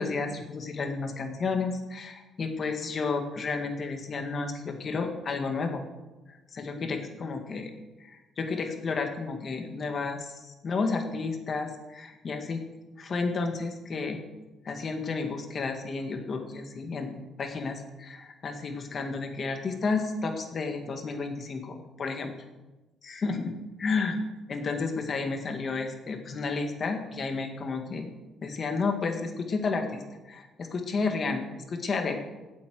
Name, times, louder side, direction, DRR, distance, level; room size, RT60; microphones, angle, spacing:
voice 1, 0.0-5.8 6.3-7.7 8.0-12.6 13.0-14.2 14.6-22.3 23.0-23.5 23.8-24.2 24.5-28.1 28.4-30.0 30.3-32.2, left 4 dB, 35° left, 5 dB, 1.9 m, -31 dB
16.5 x 8.5 x 6.5 m, 1.1 s
cardioid pair, 155°, 0 cm